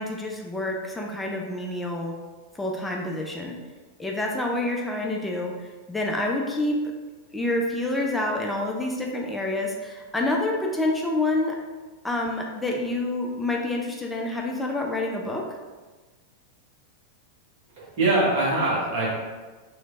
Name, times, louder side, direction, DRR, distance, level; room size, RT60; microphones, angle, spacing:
voice 1, 0.0-2.1 2.5-3.6 4.0-6.9 7.3-11.6 12.0-15.5, left 2 dB, 5° left, 0 dB, 0.4 m, -28 dB
voice 2, 17.8-19.1, right 2 dB, 50° right, -6 dB, 1.1 m, -23 dB
3.1 x 3.0 x 2.4 m, 1.3 s
figure-of-eight pair, 90°, 0 cm